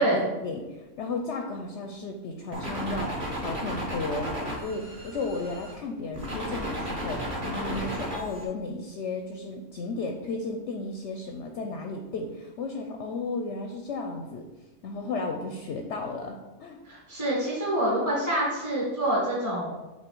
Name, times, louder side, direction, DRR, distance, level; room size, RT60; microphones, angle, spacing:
voice 1, 0.0-14.5 14.8-16.8, left 3 dB, 65° left, 3 dB, 0.8 m, -34 dB
sound 1, 2.5-5.7 6.1-8.4, equal, 35° right, 1.3 m, -34 dB
voice 2, 16.8-19.7, right 1 dB, 15° right, -6 dB, 1.1 m, -26 dB
7.1 x 3.0 x 4.5 m, 1.1 s
omnidirectional pair, 1.6 m